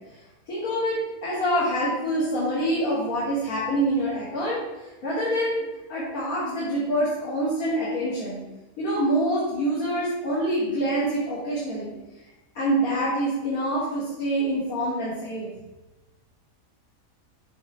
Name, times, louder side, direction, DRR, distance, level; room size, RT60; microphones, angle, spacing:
voice 1, 0.5-4.6 5.0-8.4 8.8-11.9 12.5-15.5, right 1 dB, 85° left, -9 dB, 2.9 m, -26 dB
6.8 x 6.4 x 4.4 m, 1.0 s
omnidirectional pair, 1.5 m